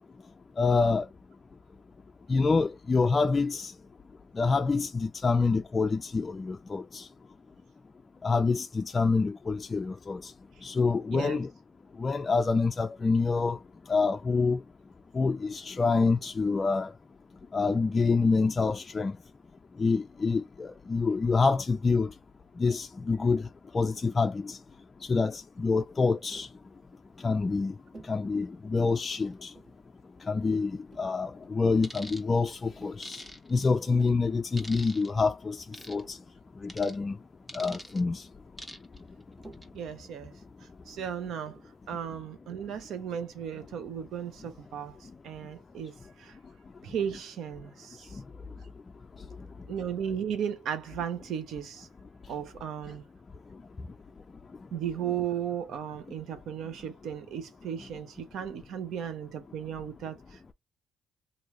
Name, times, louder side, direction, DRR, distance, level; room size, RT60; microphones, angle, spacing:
voice 1, 0.6-1.1 2.3-3.7 4.3-7.1 8.2-10.3 10.6-11.5 12.0-13.6 13.9-14.6 15.1-16.9 17.5-19.1 19.8-22.1 22.6-23.5 23.7-24.6 25.1-26.5 27.2-27.7 28.0-29.5 30.3-33.2 33.5-36.2 36.6-37.2 37.5-38.2, left 4 dB, 30° left, 0.3 m, -27 dB
Tap, 26.3-26.6 27.9-28.3 29.3-29.9 30.9-31.7 32.7-33.0 33.7-34.3 35.4-35.5 35.8-36.3 37.6-38.0 39.4-39.8 41.5-41.8, right 2 dB, 40° right, 1.5 m, -52 dB
sound 1, 31.8-32.2 33.0-33.7 34.6-35.1 35.7-36.0 36.7-36.9 37.5-38.0 38.6-39.0 39.4-39.6, equal, 10° right, 0.9 m, -43 dB
voice 2, 39.7-40.3 40.6-41.6 41.9-45.0 45.2-46.4 46.8-48.2 49.7-51.9 52.3-53.0 54.7-60.5, right 8 dB, 75° right, 0.7 m, -35 dB
3.0 x 2.6 x 3.1 m
cardioid pair, 90°, 0 cm